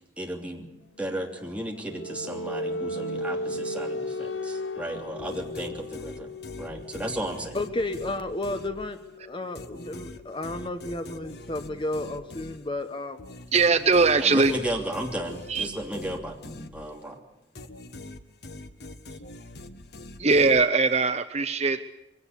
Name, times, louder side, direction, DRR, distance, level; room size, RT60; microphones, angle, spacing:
voice 1, 0.2-0.7 1.0-7.6 14.1-17.2, right 1 dB, 5° right, 0 dB, 3.1 m, -34 dB
sound 1, 1.0-12.5, left 1 dB, 80° left, 1.0 m, -37 dB
sound 2, 5.2-9.2 9.5-17.2 17.5-21.0, left 2 dB, 60° left, 1.3 m, -44 dB
voice 2, 7.5-13.2 14.3-14.6, left 2 dB, 30° left, 9 dB, 1.1 m, -32 dB
voice 3, 13.5-14.5 15.5-15.7 20.2-21.8, right 4 dB, 35° right, 9 dB, 0.9 m, -21 dB
22.5 x 17.5 x 8.5 m, 0.92 s
head